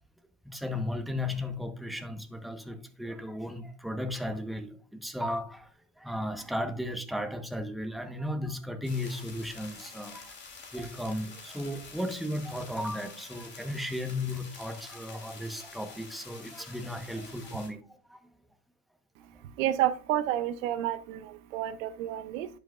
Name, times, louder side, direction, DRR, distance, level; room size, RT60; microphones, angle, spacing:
voice 1, 0.4-10.4 10.7-18.2, left 1 dB, ahead, 1.2 m, -35 dB
sound 1, 8.8-17.7, left 4 dB, 25° left, 3.3 m, -48 dB
voice 2, 19.6-22.5, right 12 dB, 75° right, 0.8 m, -30 dB
11.0 x 5.2 x 2.5 m
hypercardioid pair, 95°, 40 cm